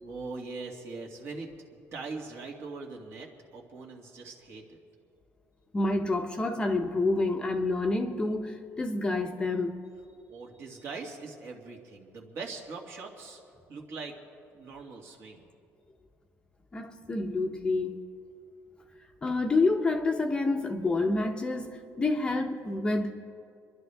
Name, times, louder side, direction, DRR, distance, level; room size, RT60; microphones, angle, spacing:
voice 1, 0.0-1.5 1.9-4.8 10.3-13.4 13.7-14.1 14.5-15.4, right 4 dB, 55° right, 2.2 m, -41 dB
voice 2, 5.7-9.8 16.7-18.0 19.2-23.1, left 2 dB, 15° left, 0.8 m, -28 dB
29.0 x 11.5 x 3.5 m
cardioid pair, 145°, 5 cm